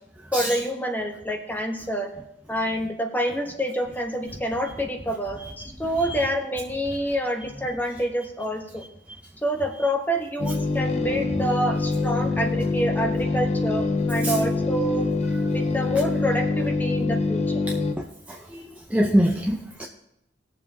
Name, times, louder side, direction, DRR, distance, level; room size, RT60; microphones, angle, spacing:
voice 1, 0.3-2.1 2.5-8.8 9.4-15.1 15.5-17.4, equal, 10° left, 3 dB, 1.1 m, -27 dB
sound 1, 10.4-17.9, left 3 dB, 35° left, 0.7 m, -25 dB
voice 2, 18.9-19.9, equal, 5° right, -1 dB, 0.7 m, -22 dB
19.0 x 7.1 x 2.8 m, 0.82 s
head